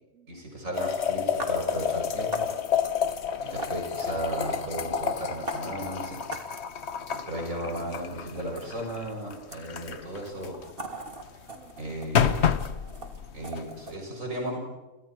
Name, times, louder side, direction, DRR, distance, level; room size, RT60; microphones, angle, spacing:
voice 1, 0.3-2.5 3.4-6.2 7.1-10.6 11.8-12.5 13.3-14.6, right 1 dB, 90° right, 0 dB, 7.4 m, -35 dB
sound 1, 0.7-11.3 11.7-13.8, left 7 dB, 60° left, 1.2 m, -30 dB
sound 2, 1.4-1.5 2.3-2.5 3.6-3.7 4.4-4.7 5.5-5.6 6.3-6.6 7.0-7.3 7.7-9.9 10.4-14.0, right 2 dB, 45° right, 2.9 m, -40 dB
voice 2, 10.9-12.1 12.4-13.1, right 6 dB, 70° right, 7 dB, 2.2 m, -59 dB
29.5 x 27.0 x 4.6 m, 1.1 s
omnidirectional pair, 1.3 m